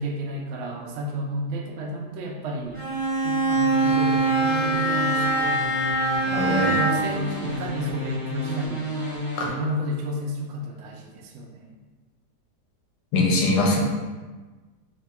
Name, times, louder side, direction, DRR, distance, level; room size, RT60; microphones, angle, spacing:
voice 1, 0.0-2.8 3.2-5.5 6.3-8.9 9.4-11.7, equal, 85° right, 0 dB, 0.6 m, -32 dB
Bowed string instrument, 2.7-7.2, right 2 dB, 35° right, 1.1 m, -23 dB
sound 1, 3.7-9.5, left 1 dB, 55° left, 1.3 m, -31 dB
voice 2, 6.3-6.7 9.4-9.5 13.1-13.8, left 2 dB, 80° left, -1 dB, 1.2 m, -21 dB
4.1 x 2.8 x 2.2 m, 1.3 s
omnidirectional pair, 1.8 m